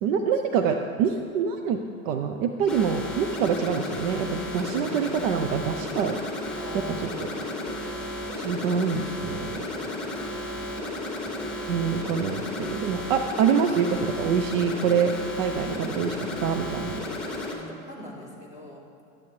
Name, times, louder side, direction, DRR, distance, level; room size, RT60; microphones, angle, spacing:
voice 1, 0.0-1.8 2.0-6.2 6.7-7.3 8.4-9.5 11.7-17.0, right 6 dB, 60° right, 6 dB, 0.8 m, -26 dB
sound 1, 2.7-17.5, left 1 dB, ahead, 2.3 m, -33 dB
voice 2, 4.8-5.3 6.6-7.6 17.3-18.8, equal, 15° right, -5 dB, 3.4 m, -44 dB
13.5 x 12.0 x 3.3 m, 2.3 s
hypercardioid pair, 120°, 43 cm